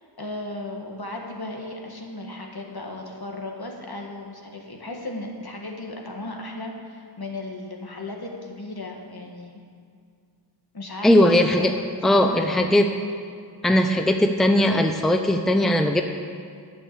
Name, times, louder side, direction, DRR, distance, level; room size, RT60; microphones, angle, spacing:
voice 1, 0.0-9.6 10.7-11.8 12.3-12.7, left 2 dB, 55° left, 1 dB, 1.6 m, -36 dB
voice 2, 11.0-11.7 12.0-12.9 13.6-16.0, left 1 dB, ahead, 5 dB, 0.7 m, -19 dB
9.8 x 6.5 x 8.3 m, 2.2 s
wide cardioid pair, 40°, 44 cm